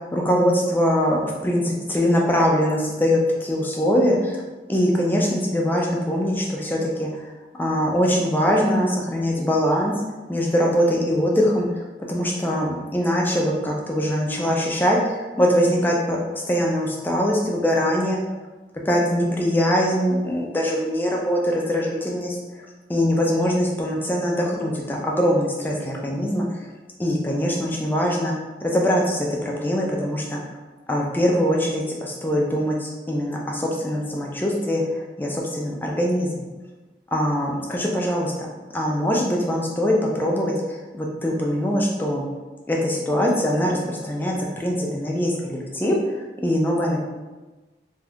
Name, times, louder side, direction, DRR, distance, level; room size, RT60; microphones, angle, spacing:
voice 1, 0.1-4.4 4.7-7.2 7.6-9.9 10.3-18.2 18.9-26.5 27.0-28.3 28.6-30.4 30.9-36.4 37.1-38.3 38.7-42.2 42.7-47.0, equal, 10° left, -1 dB, 0.4 m, -22 dB
2.6 x 2.3 x 3.4 m, 1.2 s
head